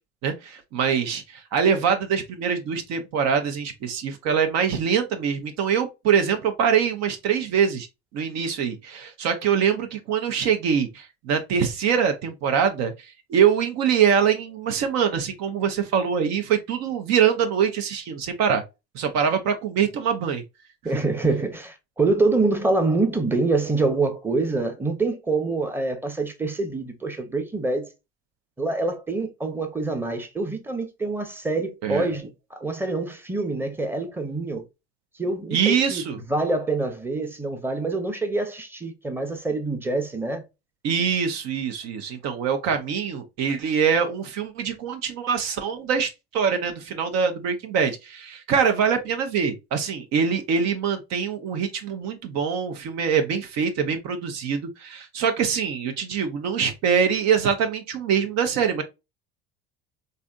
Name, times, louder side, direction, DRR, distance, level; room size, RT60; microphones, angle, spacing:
voice 1, 0.2-7.9 8.1-18.6 18.9-20.4 31.8-32.1 35.5-36.2 40.8-58.8, right 7 dB, 55° right, 0.7 m, -24 dB
voice 2, 20.8-27.9 28.6-34.6 35.2-36.0 36.3-40.4, right 3 dB, 5° right, 0.8 m, -25 dB
3.2 x 2.6 x 2.4 m
hypercardioid pair, 85°, 31 cm